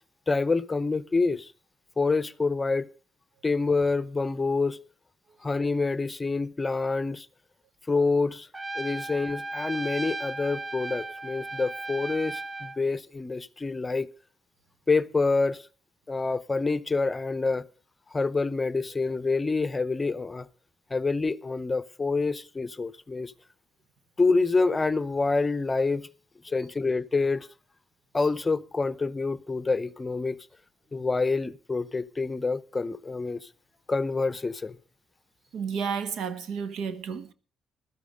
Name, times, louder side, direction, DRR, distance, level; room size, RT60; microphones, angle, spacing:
voice 1, 0.3-1.5 2.0-2.9 3.4-4.8 5.4-7.3 7.9-8.5 8.8-14.1 14.9-15.6 16.1-17.7 18.1-20.5 20.9-23.3 24.2-26.1 26.4-27.5 28.1-30.4 30.9-33.5 33.9-34.8, left 3 dB, 25° left, 0.7 m, -27 dB
Trumpet, 8.5-12.8, right 2 dB, 15° right, 0.7 m, -36 dB
voice 2, 35.5-37.3, right 6 dB, 80° right, 1.3 m, -31 dB
15.0 x 12.5 x 5.1 m
cardioid pair, 90°, 0 cm